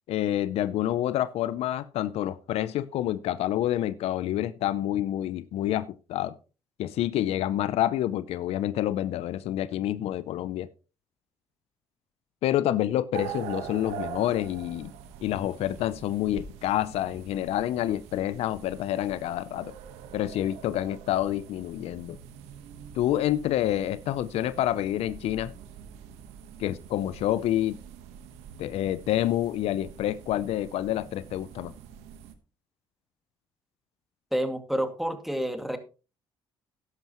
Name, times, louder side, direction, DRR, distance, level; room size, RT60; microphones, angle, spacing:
voice 1, 0.1-6.3 6.8-10.7 12.4-14.9 15.2-19.7 20.1-22.2 22.9-25.5 26.6-27.8 28.6-31.7, left 13 dB, 75° left, 0.6 m, -28 dB
sound 1, 13.1-32.3, right 8 dB, 90° right, 1.2 m, -44 dB
voice 2, 34.3-35.8, equal, ahead, 2.2 m, -29 dB
13.0 x 10.5 x 3.0 m
supercardioid pair, 70°, 11 cm